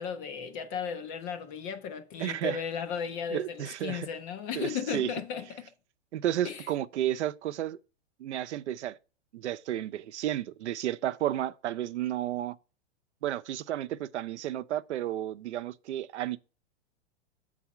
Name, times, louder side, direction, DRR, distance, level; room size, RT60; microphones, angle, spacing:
voice 1, 0.0-5.7 6.4-6.7, left 7 dB, 20° left, 0.3 m, -35 dB
voice 2, 2.2-2.6 3.3-4.1 4.6-5.1 6.1-7.8 8.2-9.0 9.3-12.6 13.2-16.4, right 12 dB, 80° right, 0.7 m, -32 dB
7.3 x 4.2 x 5.8 m
hypercardioid pair, 145°, 34 cm